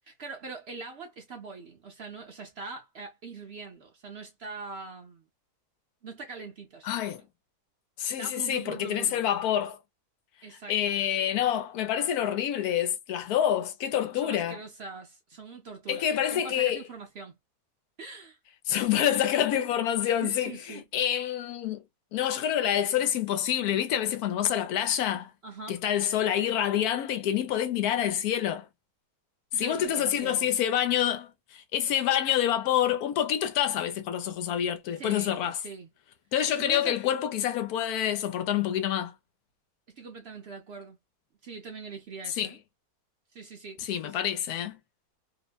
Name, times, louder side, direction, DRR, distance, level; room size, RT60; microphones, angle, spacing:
voice 1, 0.1-5.2 6.0-7.2 8.2-9.2 10.4-11.0 14.1-17.4 18.0-18.4 20.0-20.8 25.4-25.8 29.5-30.5 35.0-35.9 36.4-37.0 39.9-41.0 41.4-42.6 43.3-44.2, right 4 dB, 55° right, 0.8 m, -42 dB
voice 2, 6.8-7.2 8.0-9.8 10.7-14.6 15.9-16.8 18.7-20.5 20.9-21.8 22.1-25.3 25.7-28.7 29.6-35.6 36.3-39.1 42.4-42.5 43.8-44.8, left 10 dB, 80° left, 1.1 m, -27 dB
2.9 x 2.1 x 2.2 m
omnidirectional pair, 1.6 m